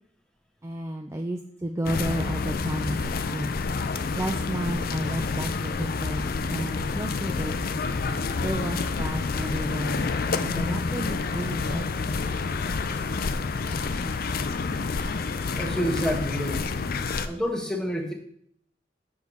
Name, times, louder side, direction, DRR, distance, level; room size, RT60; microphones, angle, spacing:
voice 1, 0.6-3.5 4.1-6.2 6.5-7.8 8.4-10.1 10.4-11.9, right 1 dB, 15° right, 3 dB, 0.4 m, -32 dB
sound 1, 1.8-17.3, left 4 dB, 50° left, 0.5 m, -28 dB
voice 2, 15.6-16.6 17.3-18.1, equal, 5° left, 1 dB, 1.2 m, -28 dB
7.1 x 4.7 x 5.4 m, 0.67 s
head